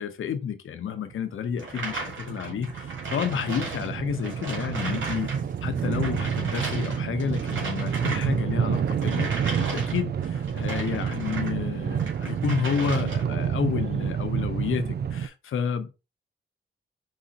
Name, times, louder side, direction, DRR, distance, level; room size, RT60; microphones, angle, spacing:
voice 1, 0.0-5.3 5.6-9.3 9.6-15.9, left 7 dB, 85° left, 0.7 m, -30 dB
sound 1, 1.1-15.3, right 8 dB, 55° right, 0.4 m, -29 dB
sound 2, 1.6-5.4 5.7-11.6 11.9-13.4, right 3 dB, 70° right, 2.0 m, -36 dB
4.8 x 2.5 x 4.0 m
cardioid pair, 75°, 20 cm